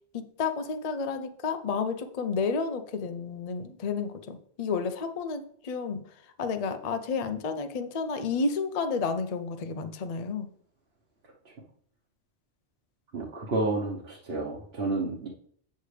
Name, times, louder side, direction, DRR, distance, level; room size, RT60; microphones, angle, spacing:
voice 1, 0.1-6.0 6.4-10.5, left 5 dB, 45° left, 9 dB, 0.5 m, -31 dB
voice 2, 13.1-15.3, right 2 dB, 55° right, -3 dB, 1.3 m, -30 dB
8.4 x 6.6 x 3.3 m, 0.63 s
omnidirectional pair, 1.3 m